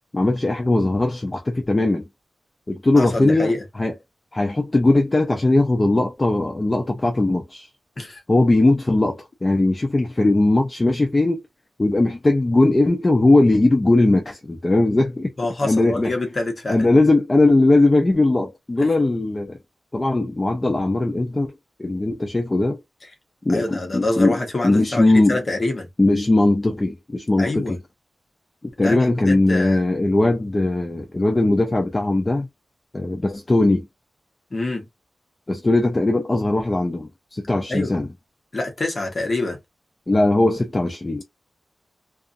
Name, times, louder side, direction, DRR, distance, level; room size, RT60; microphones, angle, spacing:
voice 1, 0.1-2.0 2.7-3.9 4.3-7.7 8.3-11.4 11.8-15.3 15.6-16.1 16.7-19.6 19.9-21.5 21.8-22.8 23.4-24.4 24.6-25.4 26.0-27.8 28.8-32.5 32.9-33.9 35.5-38.1 40.1-41.2, left 2 dB, 25° left, 0.5 m, -19 dB
voice 2, 3.0-3.6 8.0-8.2 15.4-16.9 18.8-18.9 23.5-25.9 27.4-27.8 28.8-29.9 34.5-34.9 37.7-37.9 38.5-39.6, left 2 dB, 40° left, 0.9 m, -26 dB
2.5 x 2.4 x 2.4 m
wide cardioid pair, 135°, 0 cm